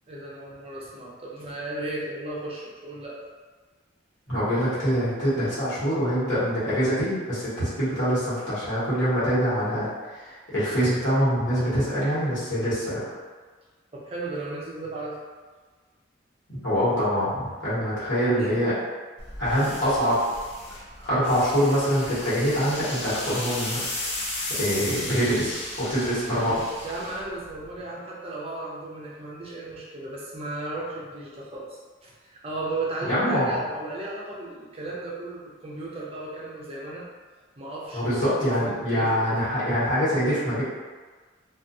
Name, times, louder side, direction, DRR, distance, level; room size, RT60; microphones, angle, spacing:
voice 1, 0.1-3.2 13.9-15.2 18.4-18.6 24.8-24.9 26.8-37.1 37.6-39.4, right 2 dB, 30° right, -5 dB, 0.5 m, -35 dB
voice 2, 4.3-13.0 16.5-18.7 19.4-20.2 21.0-23.8 24.5-26.6 33.0-33.6 37.9-40.6, equal, 70° left, -12 dB, 1.3 m, -24 dB
sound 1, 19.2-27.8, left 1 dB, 30° left, 0.4 m, -35 dB
2.5 x 2.3 x 2.6 m, 1.4 s
head